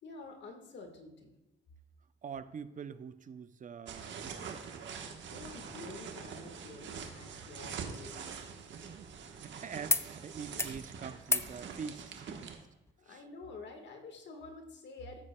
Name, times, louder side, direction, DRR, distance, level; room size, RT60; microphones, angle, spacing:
voice 1, 0.0-1.4 5.3-8.5 13.0-15.2, left 3 dB, 65° left, 4 dB, 1.6 m, -49 dB
voice 2, 2.2-4.6 8.7-12.6 13.1-13.2, right 6 dB, 40° right, 12 dB, 0.6 m, -45 dB
sound 1, 3.9-12.6, right 6 dB, 70° right, 1.2 m, -45 dB
sound 2, 7.7-9.5 9.9-10.1 10.4-10.8 11.2-11.5 12.9-13.0, left 3 dB, 15° left, 0.5 m, -35 dB
13.5 x 8.4 x 2.2 m, 0.98 s
cardioid pair, 90°, 20 cm